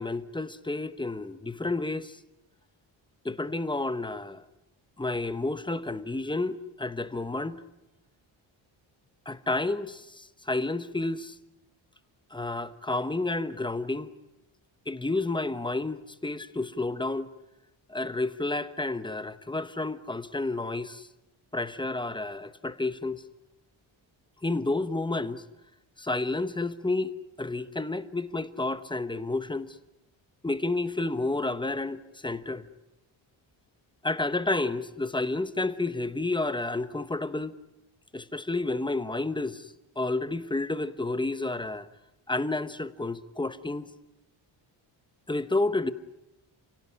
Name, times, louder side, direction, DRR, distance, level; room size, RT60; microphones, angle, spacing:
voice 1, 0.0-2.2 3.2-4.4 5.0-7.6 9.3-11.4 12.3-14.1 14.9-17.3 17.9-21.1 21.5-23.2 24.4-25.4 26.0-27.1 27.4-29.8 30.4-32.7 34.0-37.5 38.1-41.9 42.3-43.9 45.3-45.9, left 2 dB, 10° left, 1.0 m, -30 dB
30.0 x 17.0 x 9.8 m
wide cardioid pair, 160°, 48 cm